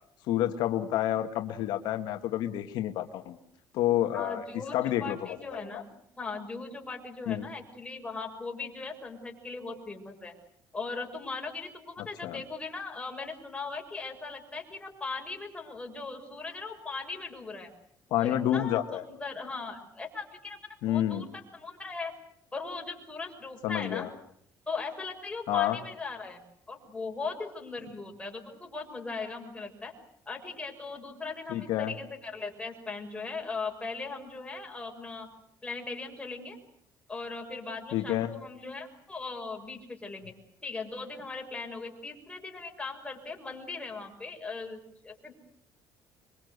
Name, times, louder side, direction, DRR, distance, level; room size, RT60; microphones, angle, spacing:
voice 1, 0.3-3.4 3.7-4.4 4.7-5.8 7.3-7.5 12.0-12.4 18.1-19.0 20.8-21.3 23.6-24.1 25.5-25.8 31.5-31.9 37.9-38.3, left 12 dB, 80° left, 6 dB, 1.8 m, -29 dB
voice 2, 4.1-5.9 6.2-10.3 10.7-17.7 18.2-20.6 20.8-22.1 22.5-24.1 24.7-26.4 26.7-29.9 30.3-35.3 35.6-36.6 37.1-40.3 40.6-45.3, left 4 dB, 15° left, 2 dB, 6.3 m, -39 dB
26.0 x 23.5 x 8.1 m, 0.69 s
cardioid pair, 125°, 7 cm